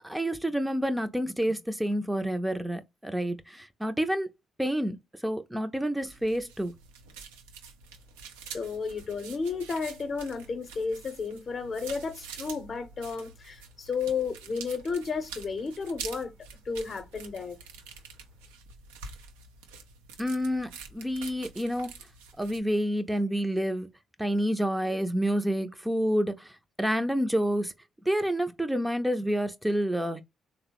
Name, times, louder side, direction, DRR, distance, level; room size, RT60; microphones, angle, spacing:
voice 1, 0.0-4.3 4.6-6.7 20.2-21.9 22.4-23.9 24.2-27.7 28.1-30.2, equal, 10° right, 0.5 m, -28 dB
sound 1, 6.0-22.6, right 6 dB, 90° right, 0.4 m, -46 dB
voice 2, 8.5-16.3 16.7-17.6, left 5 dB, 50° left, 0.7 m, -32 dB
3.4 x 2.0 x 2.9 m
hypercardioid pair, 50°, 0 cm